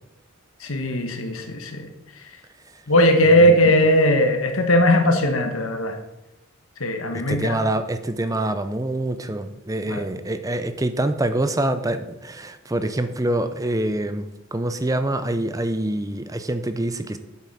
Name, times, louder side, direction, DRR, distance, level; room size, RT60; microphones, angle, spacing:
voice 1, 0.6-1.9 2.9-6.0 6.8-7.6 9.9-10.0, equal, 70° left, 5 dB, 1.5 m, -18 dB
voice 2, 3.4-3.7 7.1-17.2, right 1 dB, 15° right, 10 dB, 0.6 m, -25 dB
8.3 x 7.5 x 6.1 m, 0.91 s
head